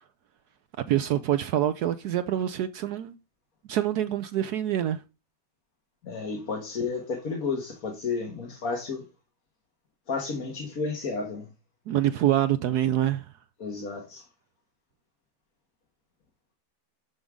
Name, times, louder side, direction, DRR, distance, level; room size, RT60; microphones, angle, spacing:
voice 1, 0.9-3.1 3.7-5.0 11.9-13.3, right 12 dB, 75° right, 0.9 m, -25 dB
voice 2, 6.0-9.1 10.1-11.5 13.6-14.2, left 4 dB, 50° left, 1.7 m, -32 dB
11.0 x 5.2 x 3.6 m
omnidirectional pair, 2.1 m